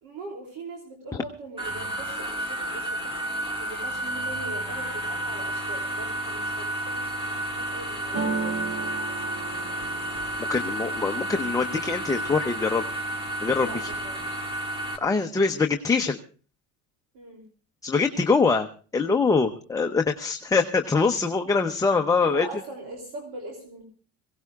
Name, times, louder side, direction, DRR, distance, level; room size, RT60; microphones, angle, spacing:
voice 1, 0.0-3.2 3.6-9.8 13.6-14.4 14.9-15.0 17.1-17.4 22.2-23.8, right 2 dB, 65° right, 1 dB, 3.1 m, -41 dB
sound 1, 1.6-15.0, right 1 dB, 15° right, 2.1 m, -31 dB
sound 2, 8.1-12.0 12.5-13.1 13.4-14.1, right 4 dB, 40° right, 1.7 m, -35 dB
voice 2, 10.5-12.8 13.4-13.9 15.0-16.2 17.8-18.7 18.9-22.5, left 4 dB, 10° left, 5 dB, 0.6 m, -23 dB
23.5 x 17.0 x 2.4 m, 0.39 s
cardioid pair, 145°, 35 cm